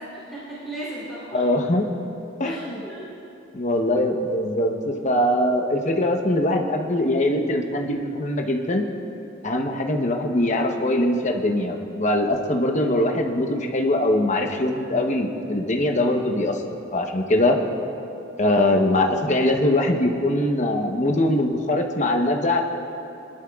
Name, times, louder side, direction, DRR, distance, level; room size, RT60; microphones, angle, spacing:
voice 1, 0.0-1.4 2.4-3.1, right 1 dB, ahead, -11 dB, 3.2 m, -36 dB
voice 2, 1.3-1.8 2.4-2.8 3.5-8.8 9.4-16.6 16.9-17.6 18.4-22.6, left 1 dB, 35° left, 2 dB, 0.9 m, -22 dB
21.5 x 11.5 x 2.4 m, 2.8 s
head